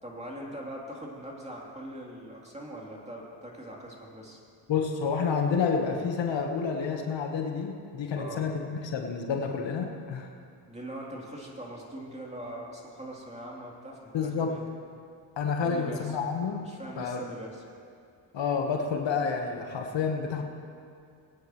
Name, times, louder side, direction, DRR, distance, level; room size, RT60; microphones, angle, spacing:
voice 1, 0.0-4.4 8.2-8.5 10.7-14.6 15.6-16.2 16.6-17.6, right 1 dB, 15° right, -3 dB, 3.1 m, -41 dB
voice 2, 4.7-10.3 14.1-14.6 15.4-17.2 18.3-20.4, left 5 dB, 70° left, 3 dB, 1.3 m, -29 dB
20.0 x 9.3 x 3.1 m, 2.3 s
supercardioid pair, 55°, 46 cm